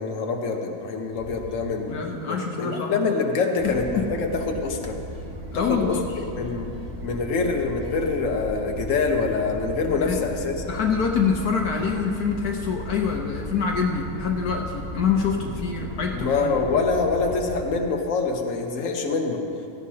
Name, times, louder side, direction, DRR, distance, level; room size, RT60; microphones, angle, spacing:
voice 1, 0.0-1.9 2.3-5.0 5.5-6.0 6.4-6.7 7.0-10.7 16.1-19.4, left 4 dB, 55° left, 2 dB, 1.4 m, -25 dB
sound 1, 1.1-1.6 3.6-17.6, equal, 25° right, 1.7 m, -36 dB
voice 2, 1.9-3.1 3.6-4.1 5.5-6.1 10.0-10.2 10.7-16.6, left 6 dB, 70° left, 1 dB, 1.4 m, -26 dB
17.0 x 15.0 x 2.8 m, 2.7 s
omnidirectional pair, 1.7 m